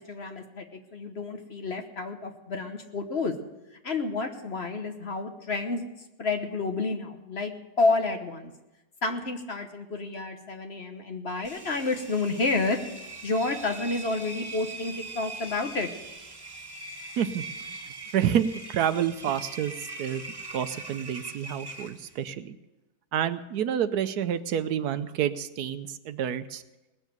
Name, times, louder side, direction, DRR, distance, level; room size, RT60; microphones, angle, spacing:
voice 1, 0.0-3.4 3.8-5.8 6.2-7.5 7.8-8.5 9.0-12.8 13.2-15.9, left 3 dB, 45° left, 6 dB, 1.2 m, -30 dB
Engine, 11.4-22.3, right 2 dB, 20° right, 0.7 m, -41 dB
voice 2, 17.2-17.8 18.1-20.2 20.5-22.6 23.1-26.6, right 9 dB, 75° right, 12 dB, 1.2 m, -29 dB
19.5 x 7.3 x 7.8 m, 1.0 s
omnidirectional pair, 1.7 m